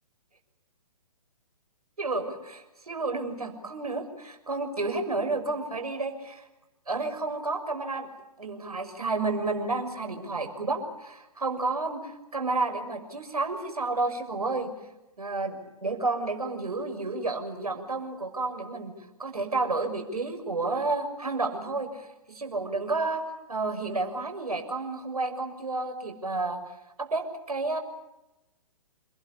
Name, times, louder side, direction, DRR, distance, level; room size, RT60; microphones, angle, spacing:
voice 1, 2.0-6.5 6.9-8.1 8.4-14.7 15.2-18.9 19.2-23.2 23.5-26.6 27.0-27.8, right 3 dB, 80° right, 4 dB, 6.4 m, -31 dB
28.5 x 20.0 x 8.6 m, 0.95 s
figure-of-eight pair, 125°, 19 cm